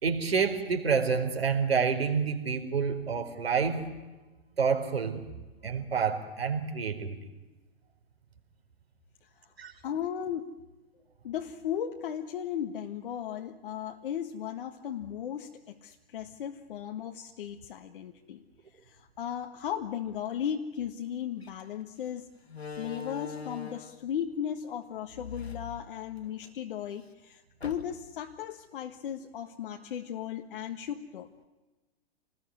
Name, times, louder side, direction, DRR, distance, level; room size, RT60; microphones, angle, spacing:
voice 1, 0.0-3.8 4.6-5.3 5.6-7.2 9.6-9.7, right 5 dB, 75° right, 5 dB, 4.4 m, -28 dB
voice 2, 9.8-10.5 11.2-18.4 18.8-22.3 22.7-31.4, left 9 dB, 60° left, 4 dB, 1.7 m, -36 dB
Slam, 21.4-21.6 22.5-24.1 25.1-26.5 26.9-27.0 27.6-28.2, left 5 dB, 85° left, 1.8 m, -42 dB
28.5 x 20.0 x 9.8 m, 1.2 s
figure-of-eight pair, 105°, 31 cm